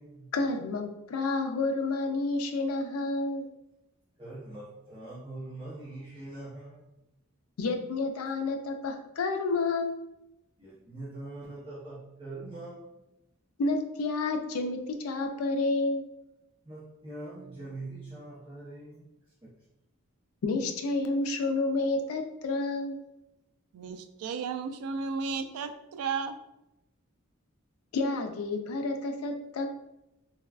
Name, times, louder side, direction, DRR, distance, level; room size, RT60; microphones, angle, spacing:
voice 1, 0.3-3.5 7.6-9.9 13.6-16.0 20.4-23.0 27.9-29.7, left 3 dB, 75° left, 5 dB, 0.4 m, -30 dB
voice 2, 4.2-6.9 10.6-12.9 16.6-19.1 19.4-19.5, right 2 dB, 25° right, -12 dB, 0.7 m, -43 dB
voice 3, 23.7-26.3, right 5 dB, 90° right, 10 dB, 0.3 m, -34 dB
3.3 x 2.2 x 2.3 m, 0.90 s
head